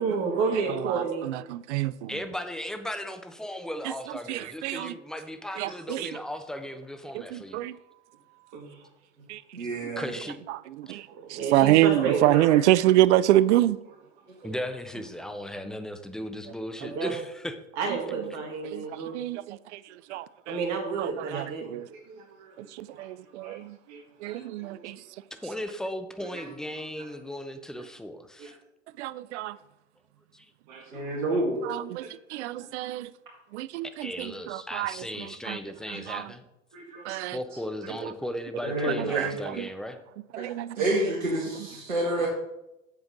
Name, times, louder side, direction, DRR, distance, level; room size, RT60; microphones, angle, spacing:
voice 1, 0.0-1.3 8.5-8.9 11.1-12.4 16.8-17.1 17.8-19.2 20.1-23.1 23.4-23.6 23.9-24.7 26.2-27.1 27.7-27.8 28.4-28.5 30.7-31.4 32.0-32.5 35.9-36.0 36.7-37.2 42.2-42.3, right 5 dB, 45° right, 2.3 m, -33 dB
voice 2, 0.8-2.1 4.3-4.9 5.6-6.1 7.1-7.7 9.3-9.4 9.9-10.0 10.5-13.8 18.6-19.8 20.1-20.5 21.0-21.5 21.7-21.9 22.6-23.8 24.2-25.0 29.0-29.6 31.6-33.1 33.5-35.6 35.9-36.3 37.0-37.4 38.0-38.1 38.9-39.7 40.3-40.8, right 14 dB, 60° right, 0.5 m, -27 dB
voice 3, 2.1-7.6 10.0-10.4 14.4-17.5 24.9-25.0 25.4-28.6 30.3-30.5 30.7-30.9 34.0-36.4 37.3-40.0, left 1 dB, ahead, 0.3 m, -36 dB
voice 4, 9.5-10.1 12.3-12.6 14.4-14.5 30.9-31.7 37.1-37.2 38.6-39.3 40.4-40.5 40.8-42.3, right 1 dB, 80° right, 2.0 m, -29 dB
8.1 x 6.9 x 3.9 m
hypercardioid pair, 95°, 39 cm